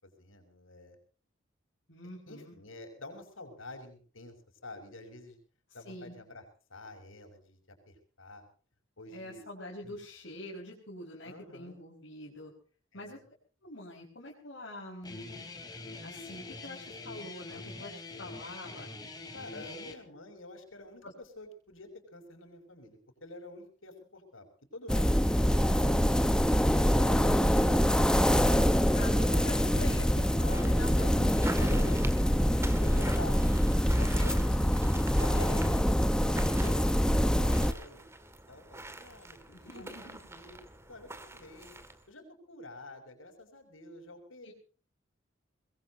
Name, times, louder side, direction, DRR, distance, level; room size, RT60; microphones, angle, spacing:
voice 1, 0.0-1.0 2.3-4.3 4.6-5.4 5.7-6.4 6.7-7.6 7.9-8.5 9.0-9.4 9.8-10.0 11.2-11.8 12.9-13.2 19.3-24.5 24.7-26.2 26.9-28.6 28.9-29.0 30.4-30.9 31.4-33.4 34.0-34.5 35.2-38.0 38.5-41.7 42.1-44.5, left 2 dB, 85° left, 5 dB, 6.2 m, -48 dB
voice 2, 1.9-2.5 5.8-6.1 9.1-12.5 12.9-13.2 13.6-15.5 16.0-18.9 19.5-20.0 21.0-21.1 27.4-27.6 28.9-31.8 34.5-34.7 35.2-35.8 39.5-40.2 44.4-44.5, left 1 dB, 70° left, -3 dB, 5.0 m, -45 dB
Guitar, 15.0-19.9, left 3 dB, 20° left, 3.5 m, -44 dB
sound 1, 24.9-37.7, equal, 5° left, 1.0 m, -25 dB
sound 2, 30.5-42.1, right 2 dB, 15° right, 2.1 m, -46 dB
24.0 x 22.0 x 2.8 m, 0.40 s
head